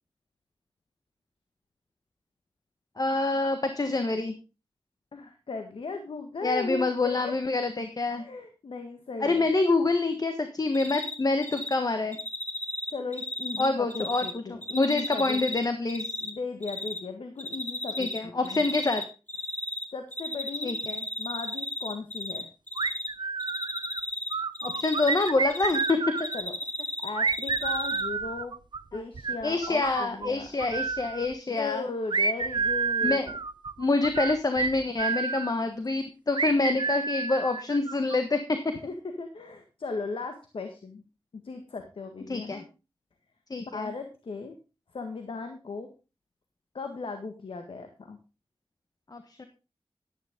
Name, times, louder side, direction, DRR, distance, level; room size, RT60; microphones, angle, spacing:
voice 1, 3.0-4.3 6.4-8.2 9.2-12.2 13.6-14.4 14.7-16.1 18.0-19.0 20.6-21.0 24.6-26.3 28.9-29.0 29.4-31.9 33.0-33.3 33.8-38.6 42.3-42.6 43.5-43.9 49.1-49.4, left 3 dB, 45° left, 7 dB, 1.5 m, -27 dB
voice 2, 5.1-7.3 8.2-9.5 12.9-15.4 16.2-18.6 19.9-20.7 21.2-22.5 26.3-26.5 27.0-28.5 28.9-30.5 31.5-33.2 38.8-41.0 41.4-42.7 43.6-44.6 44.9-45.9 46.7-48.2, left 3 dB, 70° left, 6 dB, 1.7 m, -37 dB
Cricket, 10.7-11.1 11.4-11.7 12.1-14.3 14.6-16.3 16.6-17.0 17.4-18.2 18.4-19.8 20.1-22.4 22.7-23.1 23.4-25.9 26.2-28.0, left 1 dB, 20° left, 2.3 m, -33 dB
sound 1, 22.8-24.0 24.3-26.4 27.2-30.3 30.6-31.3 32.1-35.5 36.4-38.2, right 5 dB, 55° right, 0.7 m, -30 dB
12.0 x 10.5 x 3.7 m, 0.30 s
cardioid pair, 60°, 9 cm